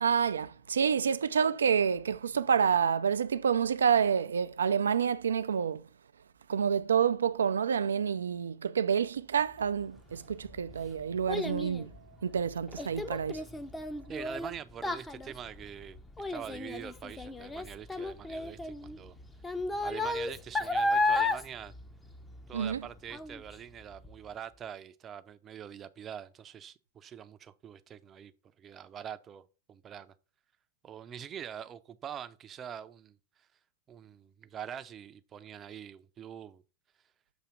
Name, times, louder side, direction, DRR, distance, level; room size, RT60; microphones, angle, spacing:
voice 1, 0.0-5.8 6.5-11.9 12.2-13.4 22.5-22.8, right 7 dB, 80° right, 0.4 m, -28 dB
Child speech kid speaking, 10.1-22.8 23.1-23.5 24.0-24.1, left 2 dB, 10° left, 0.6 m, -33 dB
voice 2, 14.1-16.0 16.3-19.2 19.8-21.7 22.5-28.3 28.6-30.1 30.8-33.2 33.9-36.6, right 9 dB, 30° right, 0.5 m, -44 dB
7.0 x 2.8 x 5.8 m
hypercardioid pair, 100°, 0 cm